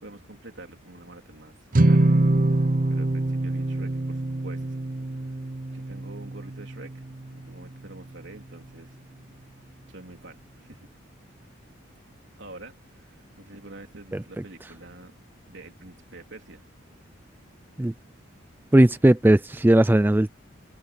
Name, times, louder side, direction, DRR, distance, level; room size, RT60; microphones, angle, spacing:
voice 1, 0.0-2.2 2.9-5.1 5.7-7.0 7.3-9.0 9.9-10.9 12.4-15.1 15.5-16.6, right 2 dB, 65° right, 3.6 m, -46 dB
sound 1, 1.7-8.2, right 2 dB, 45° right, 0.7 m, -25 dB
voice 2, 18.7-20.3, right 1 dB, 10° right, 0.3 m, -18 dB
open air
head